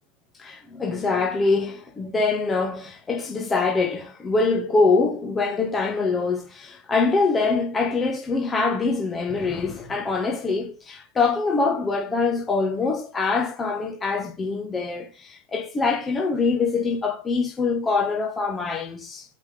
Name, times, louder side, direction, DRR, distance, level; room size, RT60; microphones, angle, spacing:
voice 1, 0.4-19.2, left 4 dB, 15° left, 1.9 m, -24 dB
9.5 x 5.0 x 3.9 m
figure-of-eight pair, 90°, 0 cm